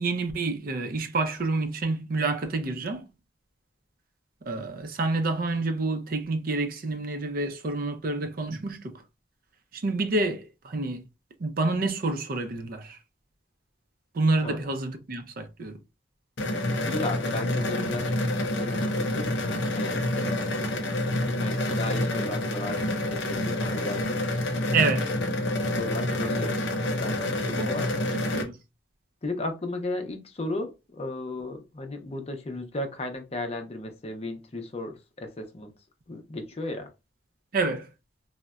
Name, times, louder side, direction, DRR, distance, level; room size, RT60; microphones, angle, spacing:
voice 1, 0.0-3.1 4.4-9.0 9.7-11.0 11.4-13.0 14.1-15.8 24.7-25.2 27.6-27.7 28.1-28.5 37.5-37.9, right 3 dB, 55° right, 0.5 m, -28 dB
sound 1, 16.4-28.4, left 1 dB, 85° left, 0.7 m, -28 dB
voice 2, 16.8-20.7 21.1-22.8 23.1-24.3 25.7-26.6 27.0-27.9 29.2-35.7 36.1-36.9, left 2 dB, 35° left, 0.5 m, -35 dB
3.8 x 2.1 x 2.3 m
head